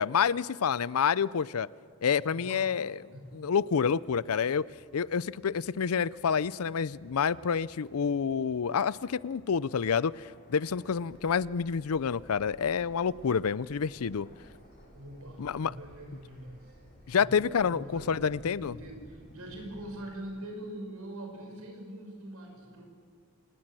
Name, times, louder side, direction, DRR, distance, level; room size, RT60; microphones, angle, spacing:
voice 1, 0.0-1.7 2.0-2.9 3.3-4.6 4.9-14.3 15.4-15.7 17.1-18.8, left 6 dB, 75° left, 20 dB, 0.5 m, -28 dB
voice 2, 2.3-2.7 3.1-3.3 14.9-16.7 17.1-22.9, right 1 dB, 75° right, 3 dB, 6.1 m, -43 dB
sound 1, 3.2-19.9, equal, 45° left, 4.5 m, -57 dB
sound 2, 11.1-20.1, equal, 45° right, 7.0 m, -58 dB
27.5 x 18.5 x 7.6 m, 2.2 s
head